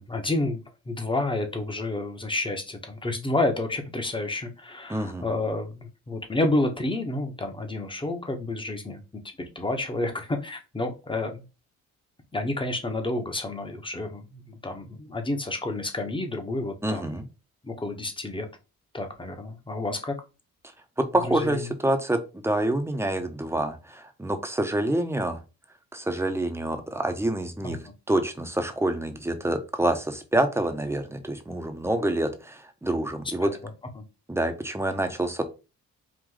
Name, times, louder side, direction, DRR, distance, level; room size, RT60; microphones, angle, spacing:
voice 1, 0.0-9.0 9.5-11.4 12.3-17.2 17.6-18.5 18.9-20.2 21.3-21.7 27.6-27.9 33.4-33.5 34.0-34.1, left 2 dB, 15° left, 5 dB, 1.2 m, -30 dB
voice 2, 4.9-5.2 16.8-17.2 21.0-25.4 25.9-33.5 34.3-35.4, right 1 dB, 10° right, 6 dB, 0.9 m, -27 dB
4.8 x 2.5 x 3.9 m, 0.30 s
cardioid pair, 90°, 30 cm